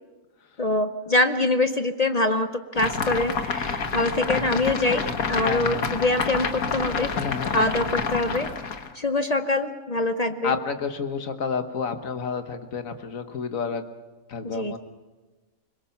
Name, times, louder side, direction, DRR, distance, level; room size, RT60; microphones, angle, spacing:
voice 1, 0.6-7.1 7.5-8.5 8.9-10.6 14.4-14.8, left 2 dB, 40° left, 9 dB, 0.6 m, -24 dB
sound 1, 2.8-8.9, left 5 dB, 90° left, 1.8 m, -28 dB
voice 2, 5.4-5.9 7.1-7.5 10.4-13.8 14.3-14.8, left 6 dB, 70° left, 8 dB, 1.7 m, -30 dB
24.5 x 21.5 x 5.8 m, 1.2 s
omnidirectional pair, 1.5 m